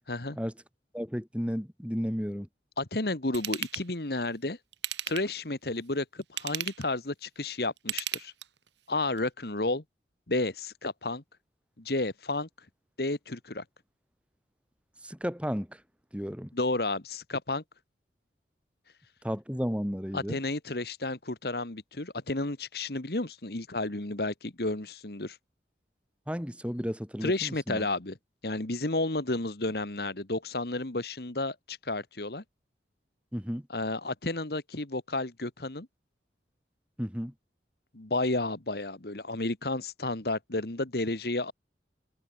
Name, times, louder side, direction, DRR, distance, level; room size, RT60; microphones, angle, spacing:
voice 1, 0.9-2.5 15.0-15.8 16.1-16.5 19.2-20.4 26.3-27.9 33.3-33.7 37.0-37.3, equal, 5° right, 4.6 m, -33 dB
voice 2, 2.8-4.6 5.1-8.3 8.9-9.8 10.3-11.2 11.8-12.5 13.0-13.6 16.5-17.6 20.1-25.4 27.2-28.2 28.4-32.4 33.7-35.9 37.9-41.5, left 2 dB, 55° left, 1.6 m, -32 dB
Ratchet pawl / Tools, 3.3-3.9 4.7-5.4 6.2-6.9 7.8-8.7 9.2-9.3, right 11 dB, 75° right, 3.9 m, -35 dB
head